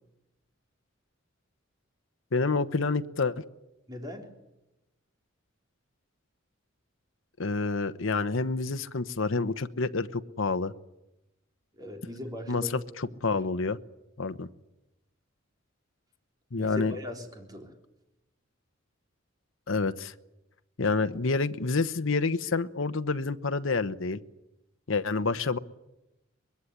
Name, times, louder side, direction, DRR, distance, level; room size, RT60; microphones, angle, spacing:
voice 1, 2.3-3.4 7.4-10.7 12.5-13.8 14.2-14.5 16.5-16.9 19.7-20.1 20.8-24.2 24.9-25.6, left 3 dB, 70° left, 10 dB, 1.0 m, -28 dB
voice 2, 3.9-4.3 11.8-12.7 13.1-13.5 16.5-17.7, left 1 dB, 20° right, 2 dB, 4.1 m, -40 dB
24.0 x 21.0 x 10.0 m, 0.94 s
head